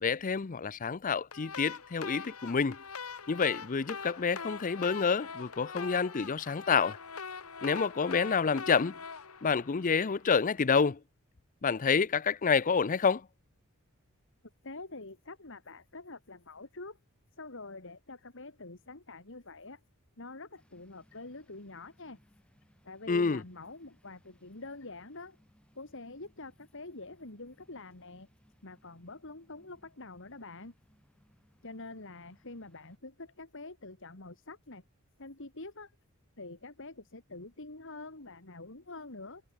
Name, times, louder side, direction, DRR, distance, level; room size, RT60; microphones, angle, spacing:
voice 1, 0.0-2.8 3.3-7.0 7.6-9.0 9.4-11.0 11.6-13.3 23.1-23.4, left 5 dB, 35° left, 0.5 m, -28 dB
sound 1, 1.3-10.4, left 5 dB, 80° left, 2.0 m, -43 dB
voice 2, 14.6-17.0 17.4-19.8 20.2-22.2 22.8-25.4 25.7-28.3 28.6-30.7 31.6-34.8 35.2-35.9 36.4-39.4, left 2 dB, 60° left, 2.7 m, -46 dB
sound 2, 20.6-33.0, equal, 5° left, 3.8 m, -67 dB
head